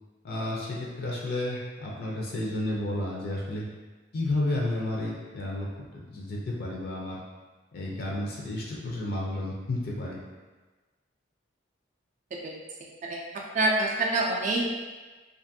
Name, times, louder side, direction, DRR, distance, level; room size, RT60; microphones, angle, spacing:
voice 1, 0.2-3.7 4.1-5.7 6.1-7.2 7.7-10.2, left 1 dB, 55° left, -3 dB, 0.4 m, -31 dB
voice 2, 13.5-14.7, right 2 dB, 40° right, -2 dB, 0.3 m, -26 dB
2.5 x 2.5 x 2.6 m, 1.3 s
head